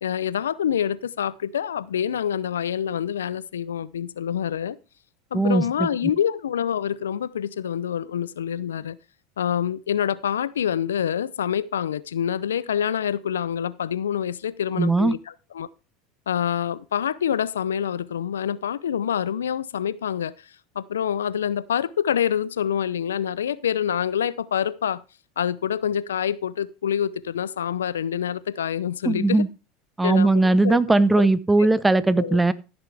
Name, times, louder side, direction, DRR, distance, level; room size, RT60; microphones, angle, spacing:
voice 1, 0.0-4.8 5.3-9.0 9.4-15.2 15.5-15.7 16.3-20.3 20.8-25.0 25.4-29.4 30.0-30.8 31.2-31.3 31.6-31.7 32.2-32.4, left 9 dB, 85° left, 0.5 m, -26 dB
voice 2, 5.3-5.9 14.8-15.1 29.1-29.5 30.0-32.5, right 2 dB, 10° right, 0.8 m, -19 dB
15.0 x 6.8 x 3.4 m
hypercardioid pair, 85°, 0 cm